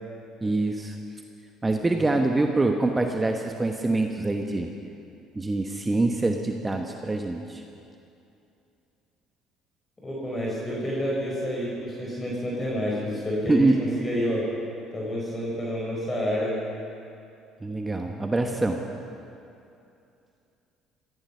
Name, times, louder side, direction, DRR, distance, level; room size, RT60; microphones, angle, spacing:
voice 1, 0.4-1.0 1.6-4.7 5.3-7.6 13.5-13.8 17.6-18.8, right 2 dB, 20° right, 4 dB, 1.1 m, -25 dB
voice 2, 10.0-14.5 14.9-16.6, equal, 20° left, -4 dB, 4.3 m, -29 dB
17.0 x 15.0 x 5.6 m, 2.7 s
supercardioid pair, 75°, 0 cm